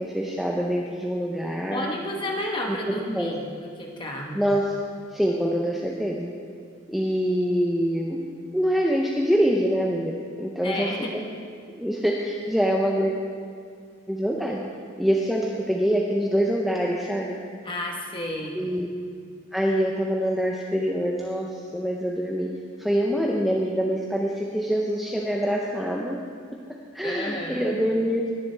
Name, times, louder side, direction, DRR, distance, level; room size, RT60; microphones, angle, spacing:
voice 1, 0.0-1.9 2.7-3.3 4.3-4.7 5.1-6.3 6.9-8.2 8.5-10.9 11.7-13.1 14.1-14.6 15.0-17.4 18.5-18.9 19.5-22.5 22.8-26.2 26.9-28.3, equal, ahead, -2 dB, 0.5 m, -25 dB
voice 2, 1.7-4.5 10.6-11.1 17.6-18.6 27.0-27.7, left 1 dB, 20° left, 0 dB, 1.1 m, -32 dB
20.0 x 7.5 x 3.4 m, 2.1 s
head